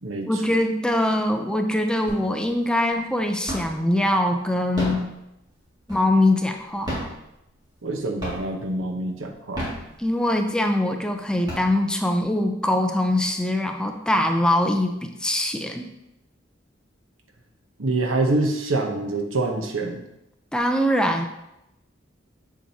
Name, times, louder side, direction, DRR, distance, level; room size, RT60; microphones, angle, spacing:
voice 1, 0.3-5.0 5.9-7.0 10.0-15.9 20.5-21.3, left 1 dB, 5° left, 4 dB, 0.5 m, -22 dB
sound 1, 2.1-2.6 2.9-3.9 4.6-6.3 6.8-7.9 8.2-8.7 9.3-10.4 10.9-11.0 11.3-12.2, equal, 20° right, 2.2 m, -32 dB
voice 2, 7.8-9.7 17.8-20.0, right 2 dB, 85° right, 3 dB, 0.9 m, -25 dB
7.2 x 7.2 x 2.8 m, 0.87 s
head